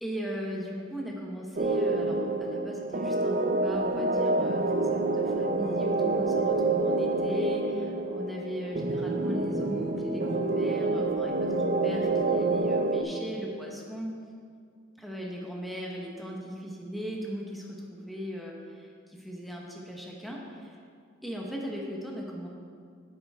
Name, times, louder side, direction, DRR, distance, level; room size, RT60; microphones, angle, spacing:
voice 1, 0.0-14.1 15.0-20.8 21.2-22.5, equal, ahead, -2 dB, 1.1 m, -38 dB
sound 1, 1.6-13.0, right 2 dB, 45° right, 0.5 m, -27 dB
9.1 x 8.5 x 3.6 m, 2.2 s
head